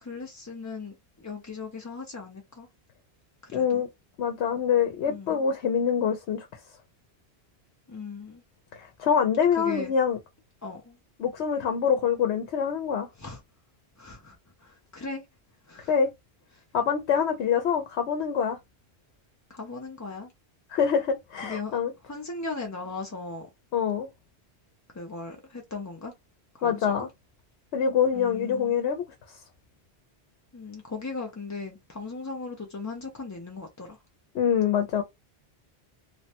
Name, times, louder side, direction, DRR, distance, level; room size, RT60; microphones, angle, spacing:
voice 1, 0.0-2.7 3.4-3.8 5.1-5.4 7.9-8.4 9.6-9.9 10.6-11.0 13.2-13.4 14.0-15.3 15.7-15.9 16.5-16.6 19.5-20.3 21.4-23.5 24.9-26.1 26.5-27.1 28.1-28.8 30.5-34.0, left 3 dB, 30° left, 0.3 m, -38 dB
voice 2, 3.5-3.9 4.2-6.5 8.7-10.2 11.2-13.1 15.9-16.1 16.7-18.6 20.7-21.9 23.7-24.1 26.6-27.1 27.7-29.0 34.3-35.0, left 7 dB, 90° left, 0.9 m, -25 dB
3.1 x 2.1 x 2.8 m
omnidirectional pair, 1.1 m